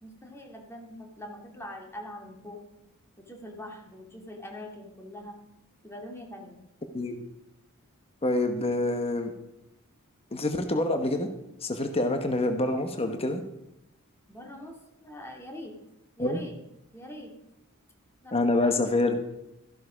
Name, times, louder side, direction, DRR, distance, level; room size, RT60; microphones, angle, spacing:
voice 1, 0.0-2.6 3.3-5.3 5.8-6.6 14.3-14.7 15.0-15.7 16.2-16.6 16.9-17.3 18.2-18.7, left 1 dB, 10° left, 1 dB, 2.3 m, -43 dB
voice 2, 8.2-9.3 10.3-11.3 11.6-13.4 16.2-16.4 18.3-19.2, left 2 dB, 25° left, 6 dB, 1.1 m, -26 dB
13.5 x 11.5 x 5.0 m, 0.87 s
head